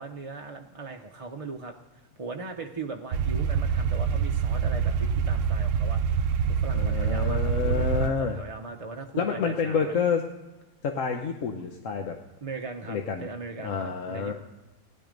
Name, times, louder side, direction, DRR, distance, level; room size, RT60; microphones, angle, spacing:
voice 1, 0.0-10.0 12.4-14.3, right 3 dB, 35° right, 3 dB, 0.6 m, -39 dB
sound 1, 3.1-8.1, right 7 dB, 65° right, 0.9 m, -26 dB
voice 2, 6.7-8.4 9.2-10.3 10.8-12.1 12.9-13.3 13.6-14.3, left 6 dB, 65° left, 3 dB, 1.2 m, -28 dB
16.5 x 11.0 x 5.1 m, 1.1 s
omnidirectional pair, 1.5 m